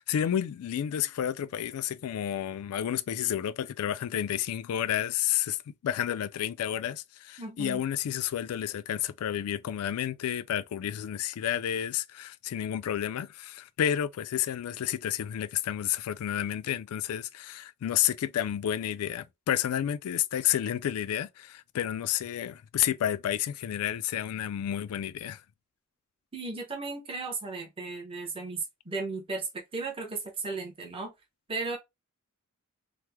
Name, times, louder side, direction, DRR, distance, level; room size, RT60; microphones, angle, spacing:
voice 1, 0.0-25.4, left 10 dB, 80° left, 0.3 m, -30 dB
voice 2, 7.4-7.8 26.3-31.1 31.5-31.8, right 3 dB, 25° right, 0.7 m, -35 dB
2.9 x 2.0 x 3.4 m
head